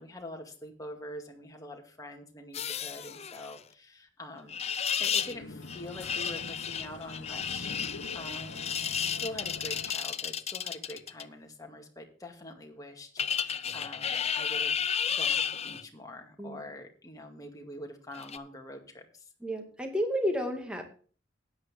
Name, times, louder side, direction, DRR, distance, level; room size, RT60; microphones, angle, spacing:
voice 1, 0.0-4.6 5.0-8.7 9.0-19.3, left 1 dB, 20° left, 2 dB, 2.2 m, -45 dB
sound 1, 2.5-3.6 4.5-5.3 5.7-11.2 13.2-15.8 18.1-18.4, left 8 dB, 35° left, 0.6 m, -32 dB
sound 2, 4.9-9.9, left 2 dB, 85° left, 1.3 m, -45 dB
voice 2, 19.4-20.8, equal, 5° right, 4 dB, 2.1 m, -31 dB
13.0 x 9.6 x 3.6 m, 0.41 s
head